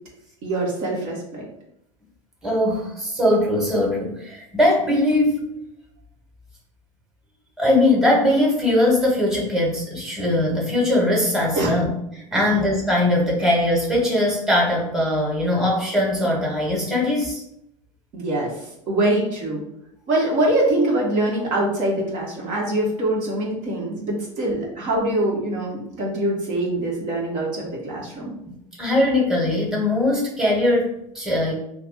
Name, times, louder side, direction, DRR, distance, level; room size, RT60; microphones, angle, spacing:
voice 1, 0.4-1.4 11.5-11.7 12.3-12.4 18.1-18.5 18.9-19.6 20.1-28.3, right 1 dB, 45° right, -3 dB, 1.1 m, -23 dB
voice 2, 2.4-5.4 7.6-11.9 12.3-17.4 28.8-31.5, left 1 dB, 5° right, -3 dB, 1.3 m, -20 dB
2.6 x 2.4 x 4.0 m, 0.77 s
figure-of-eight pair, 75°, 17 cm